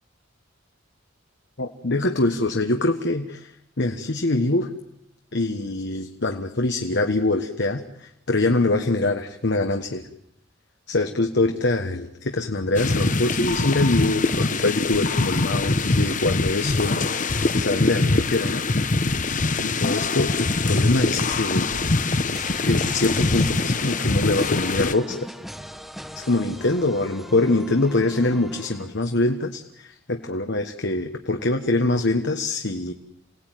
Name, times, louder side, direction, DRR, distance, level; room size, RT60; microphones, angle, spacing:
voice 1, 1.6-4.7 5.3-10.0 10.9-18.6 19.6-21.7 22.6-25.2 26.1-32.9, left 2 dB, 60° left, 5 dB, 1.4 m, -24 dB
sound 1, 12.7-24.9, left 3 dB, 40° left, 1.0 m, -23 dB
sound 2, 22.3-29.3, equal, ahead, 1.0 m, -40 dB
28.0 x 18.5 x 9.3 m, 0.81 s
head